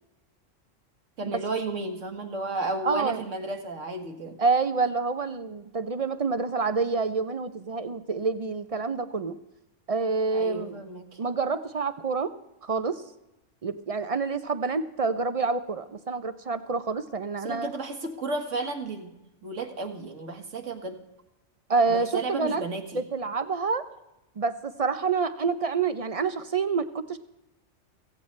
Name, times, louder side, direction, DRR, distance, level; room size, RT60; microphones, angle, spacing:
voice 1, 1.2-4.4 10.3-11.1 17.4-19.1 19.4-21.0 21.9-23.0, right 2 dB, 80° right, 4 dB, 1.8 m, -33 dB
voice 2, 2.8-3.2 4.4-9.4 9.9-10.8 11.2-12.3 12.6-13.0 13.6-17.7 21.7-22.6 22.9-23.9 24.4-27.2, right 4 dB, 45° right, 11 dB, 0.4 m, -27 dB
16.0 x 15.5 x 3.2 m, 0.93 s
omnidirectional pair, 1.3 m